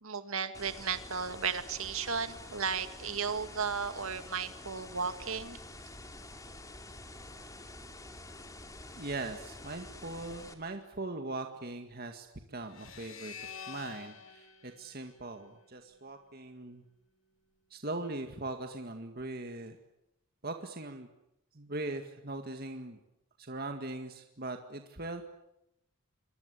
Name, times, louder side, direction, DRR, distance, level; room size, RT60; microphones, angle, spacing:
voice 1, 0.0-5.6, right 6 dB, 75° right, 10 dB, 2.1 m, -34 dB
sound 1, 0.5-10.5, left 2 dB, 15° left, 2.7 m, -48 dB
voice 2, 9.0-16.8 17.7-19.8 20.4-21.1 21.5-23.0 23.4-25.2, right 2 dB, 45° right, 5 dB, 2.0 m, -40 dB
sound 2, 12.7-16.0, left 6 dB, 70° left, 2.8 m, -48 dB
27.5 x 23.5 x 8.4 m, 0.83 s
head